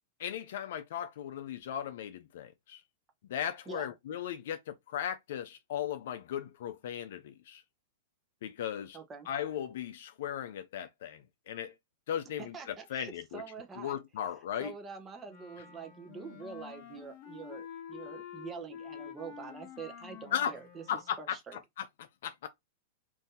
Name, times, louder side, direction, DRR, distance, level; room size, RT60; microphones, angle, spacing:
voice 1, 0.2-2.8 3.3-7.6 8.4-9.0 9.3-11.2 11.5-11.7 12.1-13.4 13.8-14.7 20.3-20.5 20.9-21.4 21.8-21.9 22.2-22.5, left 9 dB, 70° left, 0.4 m, -37 dB
voice 2, 8.9-9.3 12.4-14.3 14.6-20.8 21.2-21.6, right 5 dB, 20° right, 0.7 m, -45 dB
Wind instrument woodwind instrument, 15.3-21.2, left 8 dB, 45° left, 1.0 m, -48 dB
2.7 x 2.6 x 3.6 m
hypercardioid pair, 140°, 0 cm